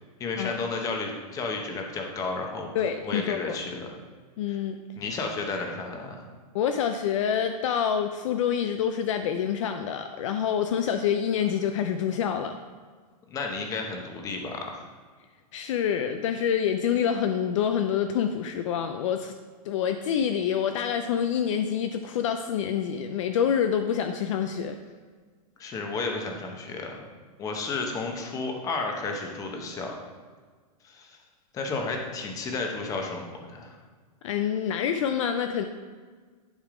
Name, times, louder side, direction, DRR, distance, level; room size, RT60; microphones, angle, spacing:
voice 1, 0.2-2.7 3.0-3.9 4.5-4.6 5.0-6.2 13.3-14.9 25.6-27.0 27.4-30.0 30.8-31.2 31.5-33.8, left 3 dB, 15° left, 2 dB, 0.9 m, -32 dB
voice 2, 2.7-3.6 4.4-4.8 6.5-12.6 15.5-19.3 19.6-24.8 34.2-35.6, left 8 dB, 50° left, 7 dB, 0.5 m, -27 dB
10.5 x 3.6 x 4.9 m, 1.5 s
supercardioid pair, 160°, 20 cm